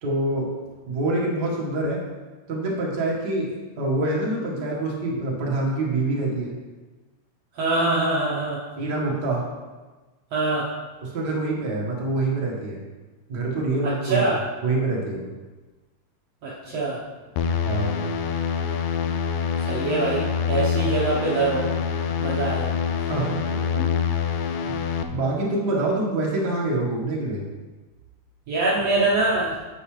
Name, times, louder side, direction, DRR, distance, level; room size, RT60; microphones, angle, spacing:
voice 1, 0.0-0.5 0.9-2.0 2.5-6.5 8.7-9.5 11.0-12.8 13.3-15.2 17.6-18.1 23.1-23.9 24.6-24.7 25.1-27.5, right 2 dB, 60° right, -3 dB, 1.1 m, -26 dB
voice 2, 7.6-8.6 10.3-10.6 14.1-14.4 16.4-17.0 19.7-20.2 20.5-21.7 22.2-22.6 28.5-29.6, right 2 dB, 90° right, -6 dB, 1.4 m, -23 dB
sound 1, 17.4-25.0, left 7 dB, 85° left, 1.9 m, -26 dB
9.4 x 7.1 x 3.3 m, 1.3 s
omnidirectional pair, 4.5 m